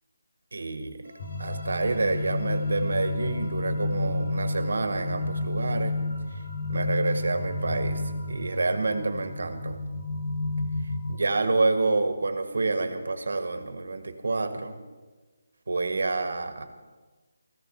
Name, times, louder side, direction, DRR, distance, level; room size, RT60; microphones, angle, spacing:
voice 1, 0.5-1.1 1.4-6.0 6.3-6.4 6.7-8.0 8.3-9.8 11.1-14.8 15.7-16.6, right 3 dB, 70° right, 8 dB, 1.8 m, -28 dB
sound 1, 1.0-8.8, left 1 dB, 90° left, 6.1 m, -49 dB
sound 2, 1.2-11.2, left 2 dB, 30° left, 1.1 m, -31 dB
15.0 x 13.5 x 5.7 m, 1.3 s
hypercardioid pair, 175°, 0 cm